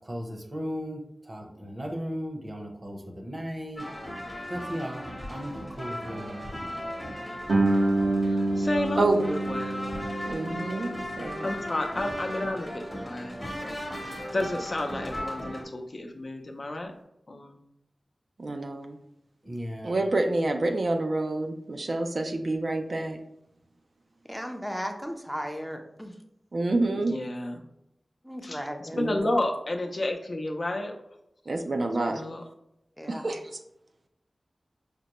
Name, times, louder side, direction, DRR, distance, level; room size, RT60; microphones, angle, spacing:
voice 1, 0.1-1.0 1.3-3.9 4.5-6.5 19.5-20.0, equal, 40° right, 1 dB, 0.8 m, -36 dB
sound 1, 3.8-15.6, equal, 20° left, 0.9 m, -37 dB
Guitar, 7.5-12.8, right 2 dB, 90° right, 0.9 m, -28 dB
voice 2, 8.6-10.0 11.4-13.7 14.0-16.9 17.3-17.6 27.0-27.6 28.4-31.0 32.1-32.4, left 1 dB, 55° left, 3 dB, 0.5 m, -32 dB
voice 3, 10.3-11.5 18.4-19.0 19.8-23.2 26.5-27.1 28.9-29.3 31.5-32.2 33.1-33.4, right 2 dB, 65° right, 4 dB, 0.4 m, -28 dB
voice 4, 24.3-26.1 28.2-29.0 33.0-33.3, equal, ahead, 4 dB, 0.5 m, -35 dB
5.0 x 2.1 x 2.9 m, 0.82 s
wide cardioid pair, 60°, 0 cm